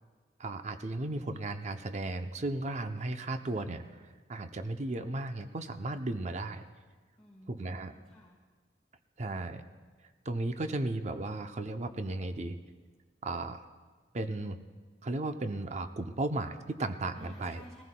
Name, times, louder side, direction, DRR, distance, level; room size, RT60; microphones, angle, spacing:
voice 1, 0.4-3.8 4.3-6.6 7.5-7.9 9.2-9.6 10.3-12.6 13.2-13.6 14.1-14.6 15.0-17.6, right 2 dB, 40° right, 8 dB, 0.6 m, -35 dB
voice 2, 7.2-8.4 17.1-17.8, left 1 dB, 5° left, -4 dB, 1.4 m, -54 dB
20.5 x 15.0 x 2.2 m, 1.5 s
head